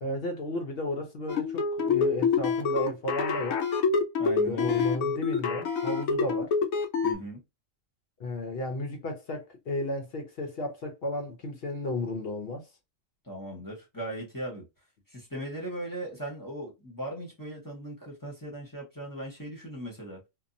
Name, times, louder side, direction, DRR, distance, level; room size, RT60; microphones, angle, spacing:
voice 1, 0.0-3.6 4.5-6.5 8.2-12.7, left 1 dB, 55° left, 0.8 m, -33 dB
sound 1, 1.3-7.1, left 5 dB, 85° left, 1.1 m, -26 dB
voice 2, 4.2-4.8 7.0-7.4 13.2-14.6 15.1-20.2, right 1 dB, 15° left, 0.9 m, -38 dB
2.7 x 2.3 x 2.5 m
omnidirectional pair, 1.4 m